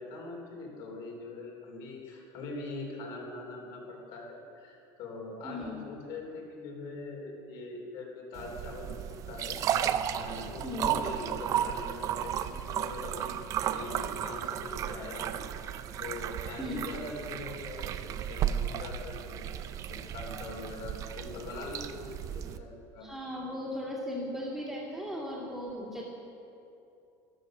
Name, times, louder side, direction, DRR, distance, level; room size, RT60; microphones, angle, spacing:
voice 1, 0.0-9.0 9.3-13.4 13.6-19.6 19.9-23.1, left 2 dB, 50° left, 0 dB, 3.6 m, -42 dB
voice 2, 5.4-5.8 10.6-11.0 16.6-16.8 23.0-26.0, left 1 dB, ahead, -9 dB, 2.3 m, -37 dB
sound 1, 8.4-22.6, right 10 dB, 35° right, 0.4 m, -34 dB
14.0 x 12.5 x 6.4 m, 2.7 s
cardioid pair, 170°, 10 cm